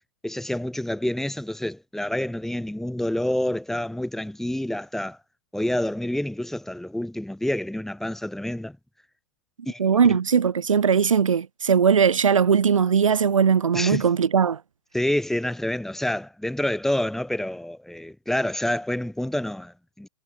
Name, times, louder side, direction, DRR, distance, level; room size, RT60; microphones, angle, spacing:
voice 1, 0.2-5.2 5.5-8.8 9.6-9.8 10.1-10.2 13.7-14.0 14.9-20.1, left 1 dB, ahead, 3.0 m, -28 dB
voice 2, 9.8-14.6, right 7 dB, 85° right, 3.6 m, -19 dB
hypercardioid pair, 110°, 16 cm